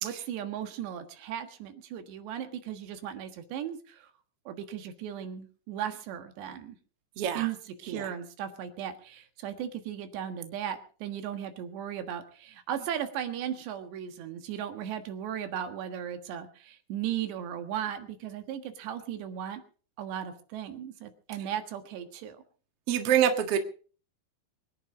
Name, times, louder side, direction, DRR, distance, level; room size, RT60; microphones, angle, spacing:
voice 1, 0.0-4.1 4.5-6.8 7.4-19.6 20.0-22.4, right 10 dB, 75° right, 7 dB, 3.7 m, -36 dB
voice 2, 7.2-7.5 7.9-8.1 22.9-23.6, right 9 dB, 50° right, 6 dB, 1.8 m, -25 dB
23.5 x 10.5 x 5.0 m, 0.41 s
omnidirectional pair, 5.1 m